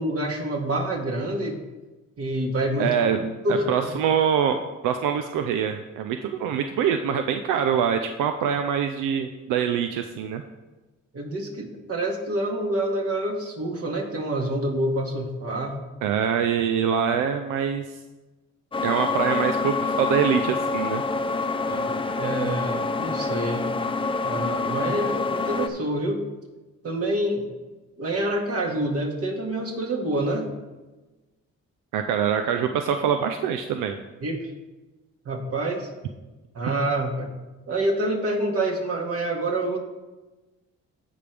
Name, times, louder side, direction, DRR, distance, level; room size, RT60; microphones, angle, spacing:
voice 1, 0.0-1.6 2.2-2.9 3.4-3.9 11.1-15.8 21.7-23.7 24.2-26.2 26.8-27.5 28.0-30.5 34.2-34.4 35.3-35.9 36.5-37.3 37.7-39.8, right 1 dB, 50° right, 1 dB, 2.0 m, -27 dB
voice 2, 2.8-4.6 4.8-10.4 16.0-17.8 18.8-21.0 31.9-34.0, right 8 dB, 90° right, 7 dB, 0.5 m, -24 dB
sound 1, 18.7-25.7, left 3 dB, 15° left, 0.6 m, -26 dB
16.0 x 5.3 x 3.4 m, 1.2 s
cardioid pair, 90°, 30 cm